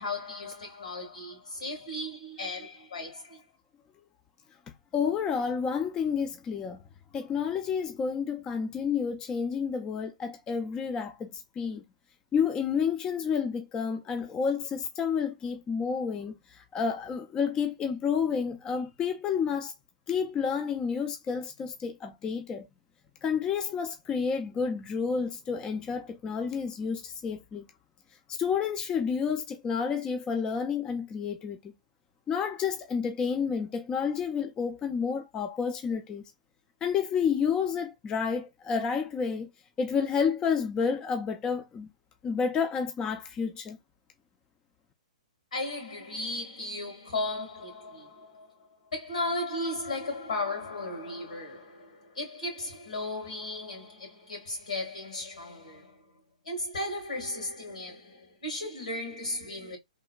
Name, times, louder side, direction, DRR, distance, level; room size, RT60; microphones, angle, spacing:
voice 1, 0.0-3.4 45.5-56.1 56.4-59.8, left 2 dB, 80° left, 1.7 m, -36 dB
voice 2, 4.9-6.8 7.1-11.8 12.3-19.7 20.1-22.7 23.2-27.7 28.3-31.7 32.3-36.2 36.8-39.5 39.8-41.9 42.2-43.8, left 6 dB, 20° left, 0.4 m, -30 dB
3.1 x 2.2 x 2.2 m
hypercardioid pair, 120°, 4 cm